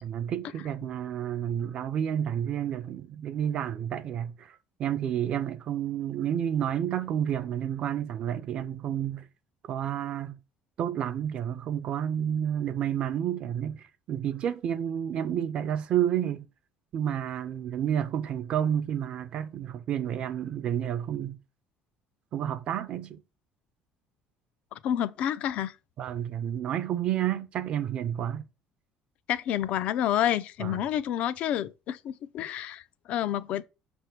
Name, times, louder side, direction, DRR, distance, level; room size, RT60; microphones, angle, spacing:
voice 1, 0.0-9.3 9.7-10.4 10.8-16.5 16.9-21.4 22.3-23.2 26.0-28.4 30.6-30.8, right 10 dB, 45° right, 0.5 m, -30 dB
voice 2, 24.7-25.7 29.3-33.6, left 11 dB, 55° left, 0.4 m, -29 dB
5.9 x 3.4 x 5.9 m
cardioid pair, 155°, 3 cm